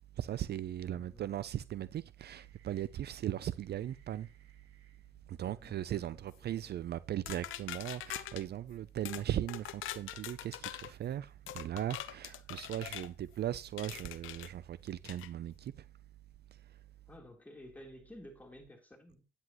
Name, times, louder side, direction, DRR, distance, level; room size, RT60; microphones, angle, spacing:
voice 1, 0.2-4.3 5.3-15.9 16.5-16.8, right 11 dB, 55° right, 0.5 m, -38 dB
voice 2, 0.9-1.3 5.4-6.7 12.2-12.5 17.1-19.3, left 1 dB, 10° left, 3.5 m, -54 dB
sound 1, 1.1-6.5, right 5 dB, 85° right, 1.9 m, -67 dB
sound 2, 7.3-8.4 9.0-9.2 9.5-10.9 11.5-13.1 13.8-14.5 15.0-15.3, left 13 dB, 85° left, 0.7 m, -43 dB
9.7 x 9.6 x 3.0 m
cardioid pair, 90°, 20 cm